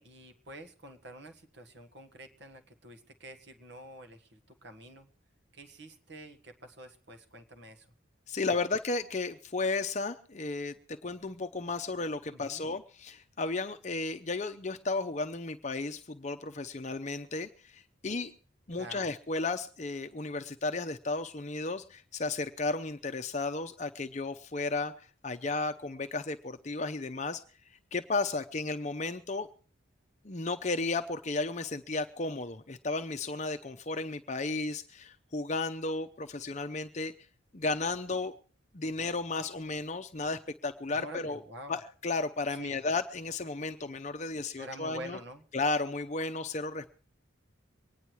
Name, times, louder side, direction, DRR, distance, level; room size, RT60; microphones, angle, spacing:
voice 1, 0.0-5.1 5.5-7.9 8.5-8.7 12.3-12.6 18.7-19.1 40.9-41.8 42.5-42.8 44.6-45.4, right 1 dB, 60° right, 6 dB, 1.6 m, -47 dB
voice 2, 8.3-18.3 18.7-27.4 27.9-29.5 30.2-37.1 37.5-38.3 38.7-41.4 41.7-45.2 45.5-46.9, left 3 dB, 35° left, 8 dB, 0.7 m, -34 dB
24.0 x 9.9 x 4.6 m, 0.43 s
head